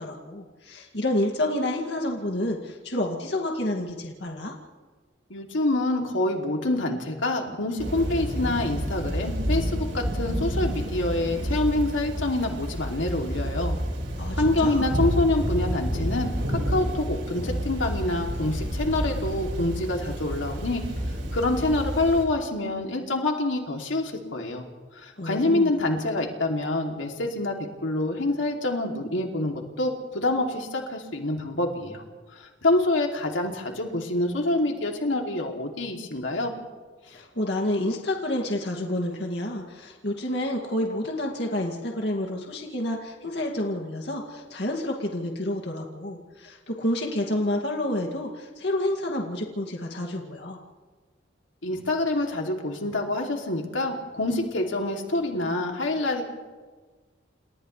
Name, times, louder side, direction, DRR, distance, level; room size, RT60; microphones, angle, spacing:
voice 1, 0.0-4.5 14.2-14.8 25.2-25.7 37.1-50.6, left 1 dB, 60° left, 0 dB, 2.4 m, -29 dB
voice 2, 5.3-13.7 14.4-20.8 21.3-24.6 24.9-27.5 27.8-32.0 32.3-36.5 51.6-56.2, left 2 dB, 80° left, 1 dB, 2.9 m, -26 dB
Thunder / Rain, 7.8-22.2, equal, 70° right, 5.1 m, -29 dB
29.5 x 29.0 x 3.3 m, 1.4 s
head